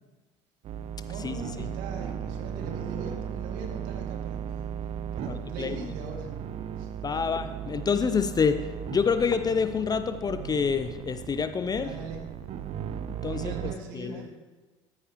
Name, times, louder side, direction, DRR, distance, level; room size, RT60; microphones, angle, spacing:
sound 1, 0.6-13.7, right 8 dB, 40° right, 0.6 m, -36 dB
voice 1, 1.1-4.7 5.1-6.3 6.8-6.9 11.8-12.2 13.3-14.3, right 4 dB, 60° right, 1 dB, 2.3 m, -41 dB
voice 2, 5.3-5.9 7.0-11.9 13.2-14.2, left 6 dB, 25° left, 10 dB, 0.6 m, -27 dB
13.5 x 9.7 x 3.0 m, 1.2 s
figure-of-eight pair, 65°, 16 cm